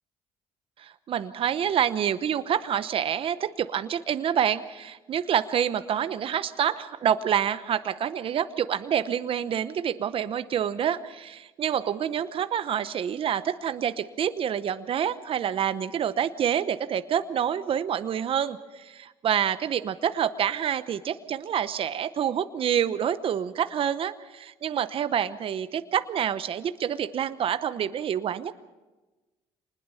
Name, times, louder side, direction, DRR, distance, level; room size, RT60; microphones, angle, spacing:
voice 1, 0.8-28.6, right 9 dB, 50° right, 12 dB, 0.8 m, -27 dB
25.0 x 20.0 x 5.7 m, 1.2 s
cardioid pair, 95°, 12 cm